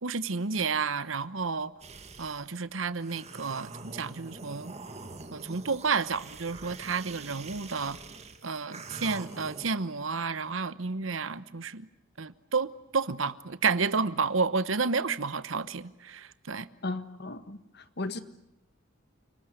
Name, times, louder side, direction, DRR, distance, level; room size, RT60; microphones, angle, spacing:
voice 1, 0.0-1.7 2.2-4.7 5.3-8.0 8.4-11.9 12.2-16.7, right 4 dB, 75° right, 1.0 m, -31 dB
sound 1, 1.8-2.4 3.0-9.7, right 3 dB, 30° right, 1.9 m, -45 dB
voice 2, 16.8-18.2, left 2 dB, 55° left, 1.6 m, -36 dB
30.0 x 19.5 x 9.7 m
head